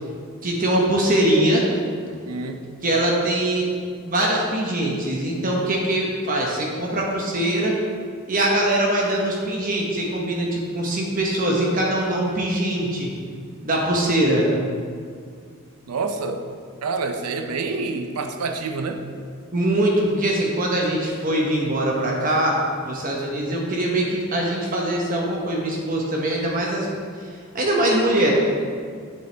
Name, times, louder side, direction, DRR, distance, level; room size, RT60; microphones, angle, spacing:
voice 1, 0.4-1.7 2.8-3.7 4.0-7.8 8.3-13.1 13.6-14.5 19.5-26.9 27.2-28.3, right 1 dB, 40° right, -2 dB, 1.0 m, -22 dB
voice 2, 2.2-2.6 15.9-16.5 16.8-19.0, right 3 dB, 90° right, 6 dB, 0.6 m, -27 dB
7.8 x 7.8 x 3.3 m, 2.1 s
head